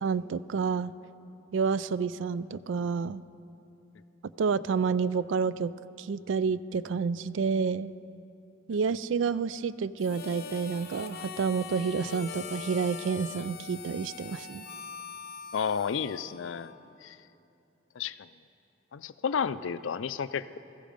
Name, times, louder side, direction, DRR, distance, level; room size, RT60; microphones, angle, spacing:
voice 1, 0.0-0.9 1.5-3.2 4.4-5.7 6.0-7.9 8.7-14.6, right 5 dB, 70° right, 17 dB, 0.3 m, -29 dB
Harmonica, 10.0-16.9, left 6 dB, 55° left, 0.8 m, -42 dB
voice 2, 15.5-16.7 17.0-17.2 18.0-18.3 18.9-20.6, left 7 dB, 75° left, 14 dB, 0.4 m, -32 dB
15.0 x 15.0 x 5.2 m, 2.8 s
head